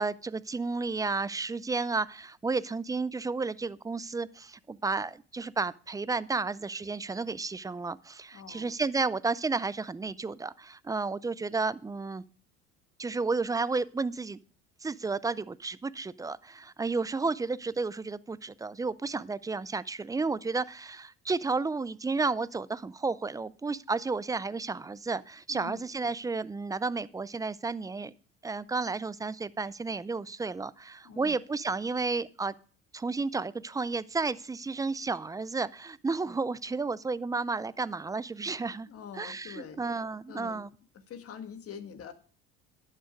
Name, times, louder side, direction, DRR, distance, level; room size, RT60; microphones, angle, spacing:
voice 1, 0.0-12.2 13.0-14.4 14.8-28.1 28.4-32.5 32.9-38.9 39.2-40.7, right 4 dB, 10° right, 19 dB, 0.4 m, -32 dB
voice 2, 8.3-8.7 25.5-25.9 31.0-31.3 38.9-39.8 40.3-40.6 40.9-42.1, left 7 dB, 50° left, 9 dB, 1.5 m, -44 dB
11.0 x 6.6 x 5.2 m, 0.43 s
hypercardioid pair, 70°, 31 cm